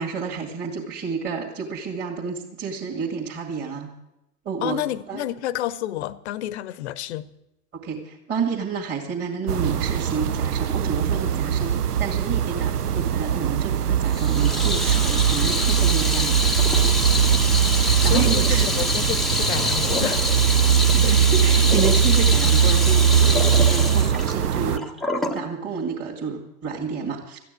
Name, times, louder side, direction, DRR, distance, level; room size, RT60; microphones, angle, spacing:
voice 1, 0.0-3.9 4.5-4.8 5.1-5.2 7.7-16.5 17.7-18.7 20.8-27.4, right 5 dB, 25° right, -2 dB, 2.2 m, -30 dB
voice 2, 4.6-7.3 18.0-20.5 21.0-21.2, left 12 dB, 45° left, 19 dB, 0.9 m, -30 dB
sound 1, 9.5-24.8, right 8 dB, 80° right, 0.7 m, -21 dB
Water tap faucet / Sink (filling or washing), 14.1-25.4, left 2 dB, ahead, 0.8 m, -26 dB
14.0 x 9.1 x 9.3 m, 0.89 s
figure-of-eight pair, 105°, 46 cm